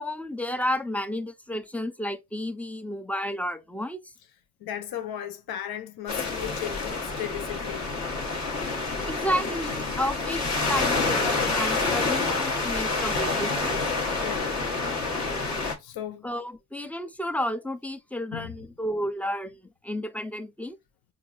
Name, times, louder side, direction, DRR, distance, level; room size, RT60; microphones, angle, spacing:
voice 1, 0.0-4.1 9.0-13.8 16.2-20.8, equal, 5° left, 0.4 m, -32 dB
voice 2, 4.6-7.9 14.2-14.6 15.8-16.3 18.3-18.5, left 11 dB, 70° left, 0.6 m, -35 dB
sound 1, 6.1-15.7, left 3 dB, 45° left, 1.2 m, -28 dB
4.4 x 2.6 x 2.3 m
cardioid pair, 75°, 39 cm